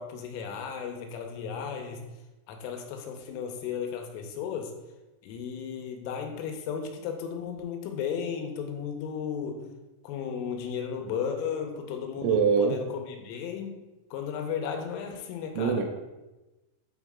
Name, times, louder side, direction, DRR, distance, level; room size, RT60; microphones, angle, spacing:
voice 1, 0.0-2.0 2.5-4.7 5.2-9.7 10.0-13.8 14.1-15.8, left 7 dB, 85° left, 4 dB, 3.4 m, -34 dB
voice 2, 12.2-12.8 15.6-15.8, right 6 dB, 80° right, 3 dB, 2.8 m, -23 dB
8.8 x 4.2 x 3.6 m, 1.1 s
omnidirectional pair, 5.7 m